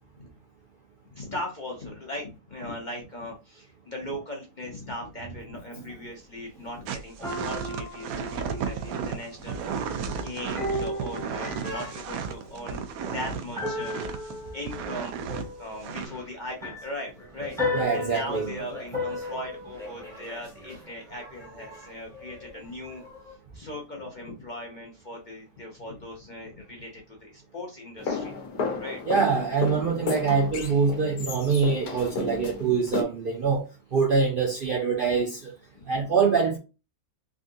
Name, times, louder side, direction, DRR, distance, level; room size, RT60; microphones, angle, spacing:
voice 1, 1.1-23.0 23.5-29.0 35.7-36.1, left 1 dB, 45° left, 0.6 m, -39 dB
sound 1, 5.9-6.0 7.2-9.5 10.5-12.8 13.6-21.2 21.7-22.7 23.0-23.3, left 2 dB, ahead, 1.0 m, -35 dB
sound 2, 6.9-14.3 14.7-15.4 15.8-16.1, right 6 dB, 75° right, 1.0 m, -33 dB
voice 2, 17.7-18.5 20.0-20.2 21.7-21.9 29.1-33.6 33.9-35.5 35.9-36.6, right 5 dB, 55° right, 0.6 m, -25 dB
sound 3, 28.0-33.0, left 4 dB, 80° left, 1.3 m, -33 dB
3.6 x 2.5 x 2.5 m
omnidirectional pair, 1.6 m